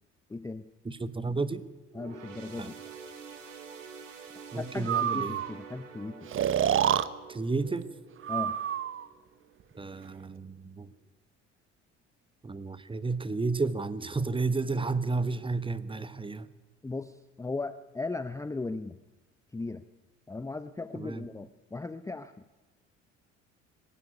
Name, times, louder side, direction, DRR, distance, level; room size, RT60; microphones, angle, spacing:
voice 1, 0.3-0.7 1.9-2.8 4.6-6.3 8.3-8.6 16.8-19.0 19.5-19.8 20.3-22.3, left 3 dB, 10° left, 12 dB, 0.7 m, -37 dB
voice 2, 0.8-1.7 2.6-2.7 4.5-5.4 7.3-7.9 9.7-10.9 12.4-16.5 20.9-21.3, right 3 dB, 15° right, 15 dB, 1.2 m, -32 dB
sound 1, 1.9-9.6 10.0-10.2 11.1-11.2, right 6 dB, 80° right, 2.2 m, -48 dB
Breathing, 4.9-5.5 6.3-7.1 8.2-9.1, right 9 dB, 35° right, 1.0 m, -27 dB
19.5 x 16.0 x 9.8 m, 1.2 s
figure-of-eight pair, 55°, 37 cm